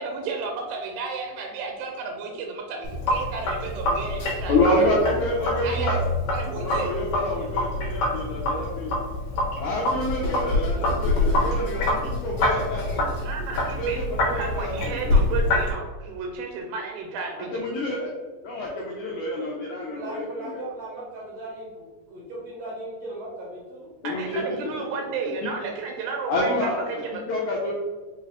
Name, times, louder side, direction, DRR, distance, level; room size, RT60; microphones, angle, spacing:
voice 1, 0.0-4.9 5.6-6.0 6.3-6.9 13.2-14.0 14.4-17.5 24.0-27.2, right 4 dB, 90° right, 2 dB, 2.4 m, -33 dB
Sink (filling or washing), 2.8-15.7, left 1 dB, 60° left, 1.9 m, -26 dB
voice 2, 4.5-6.0 6.6-9.1 9.6-13.1 13.8-15.2 17.5-18.1 18.4-20.6 24.0-24.4 26.3-27.0 27.3-27.7, left 1 dB, 80° left, -3 dB, 1.7 m, -27 dB
voice 3, 19.9-23.9 24.3-25.2 26.0-26.1, right 1 dB, 70° right, -5 dB, 1.5 m, -38 dB
5.3 x 2.4 x 3.4 m, 1.3 s
omnidirectional pair, 4.1 m